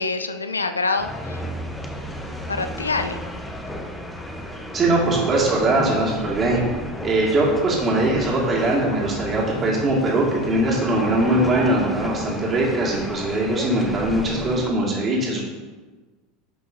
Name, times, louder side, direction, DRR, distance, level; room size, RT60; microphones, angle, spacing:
voice 1, 0.0-1.4 2.5-3.2, left 3 dB, 85° left, 9 dB, 0.4 m, -25 dB
sound 1, 1.0-14.7, equal, 10° left, 1.0 m, -33 dB
voice 2, 4.7-6.6 7.0-15.4, right 1 dB, 30° right, -4 dB, 2.3 m, -21 dB
11.0 x 6.0 x 2.8 m, 1.3 s
figure-of-eight pair, 80°, 0 cm